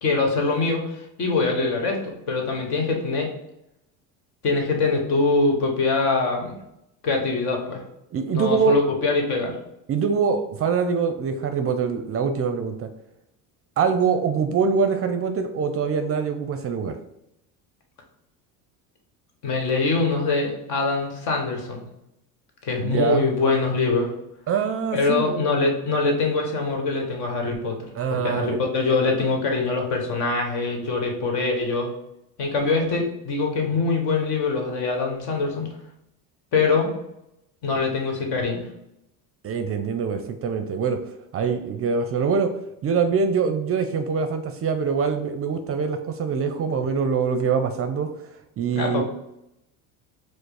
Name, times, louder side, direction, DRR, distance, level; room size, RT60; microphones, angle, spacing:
voice 1, 0.0-3.3 4.4-6.6 7.0-7.8 8.3-9.5 19.4-21.9 22.6-24.1 24.9-31.9 32.4-35.7 36.5-36.9 37.6-38.7 48.7-49.0, left 3 dB, 65° left, 2 dB, 1.4 m, -23 dB
voice 2, 8.1-8.8 9.9-12.9 13.8-17.0 22.8-23.2 24.5-25.5 28.0-28.6 39.4-41.0 41.3-42.5 42.8-48.1 48.6-49.0, right 6 dB, 35° right, 8 dB, 0.5 m, -24 dB
4.8 x 2.1 x 4.8 m, 0.83 s
supercardioid pair, 90°, 44 cm